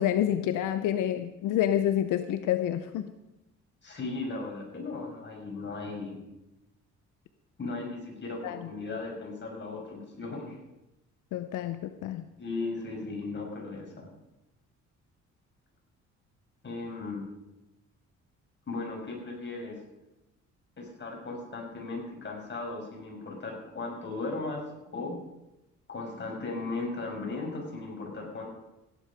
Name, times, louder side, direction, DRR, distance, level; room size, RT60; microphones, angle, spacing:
voice 1, 0.0-3.1 8.4-8.7 11.3-12.2, left 11 dB, 90° left, 10 dB, 0.8 m, -28 dB
voice 2, 3.8-6.2 7.6-10.6 12.4-14.1 16.6-17.2 18.7-19.8 20.8-24.6 24.9-25.1 25.9-28.5, left 3 dB, 35° left, -1 dB, 6.1 m, -36 dB
16.5 x 10.5 x 5.1 m, 0.94 s
cardioid pair, 90°, 30 cm